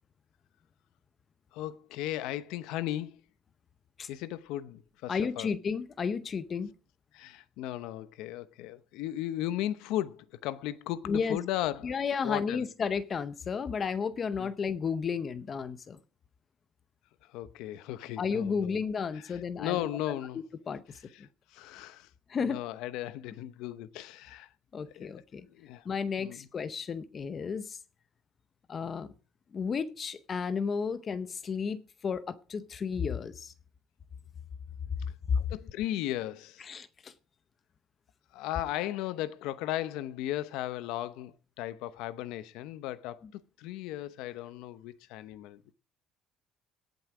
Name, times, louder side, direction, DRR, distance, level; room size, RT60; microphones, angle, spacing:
voice 1, 1.5-3.2 4.1-5.5 7.1-12.0 12.2-12.7 14.4-14.5 17.3-18.8 19.1-20.4 21.1-21.2 21.5-22.1 22.4-24.5 24.9-25.1 25.5-25.8 26.2-26.5 35.3-36.7 38.3-45.7, left 13 dB, 85° left, 0.9 m, -36 dB
voice 2, 5.1-6.7 11.1-11.4 11.8-16.0 18.2-19.9 20.7-20.8 21.2-21.3 22.3-22.6 24.7-25.5 25.8-27.8 28.7-29.1 29.5-33.5 35.3-35.4 36.6-37.1, left 6 dB, 30° left, 0.7 m, -32 dB
18.0 x 8.1 x 4.9 m
cardioid pair, 160°, 0 cm